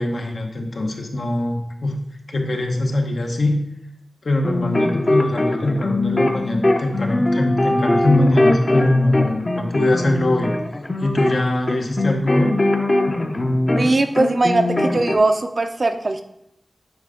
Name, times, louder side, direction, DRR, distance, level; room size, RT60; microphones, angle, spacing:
voice 1, 0.0-2.0 2.3-3.6 4.2-10.5 11.0-12.6, left 1 dB, 75° left, 2 dB, 0.9 m, -22 dB
sound 1, 4.4-13.9 14.1-15.2, left 1 dB, 35° left, 0.6 m, -20 dB
voice 2, 13.8-16.2, right 2 dB, 50° right, 8 dB, 0.5 m, -19 dB
8.9 x 3.3 x 3.7 m, 0.80 s
wide cardioid pair, 85°, 0 cm